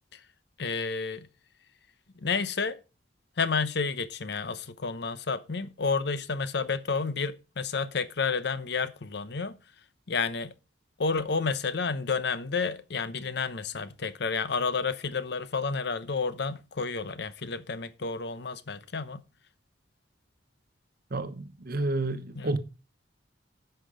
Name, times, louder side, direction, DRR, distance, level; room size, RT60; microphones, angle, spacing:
voice 1, 0.6-1.3 2.2-2.8 3.4-9.6 10.1-10.5 11.0-19.2 22.3-22.5, left 4 dB, 65° left, 0.8 m, -30 dB
voice 2, 21.1-22.6, right 2 dB, 55° right, 1.0 m, -30 dB
10.5 x 5.9 x 5.0 m
head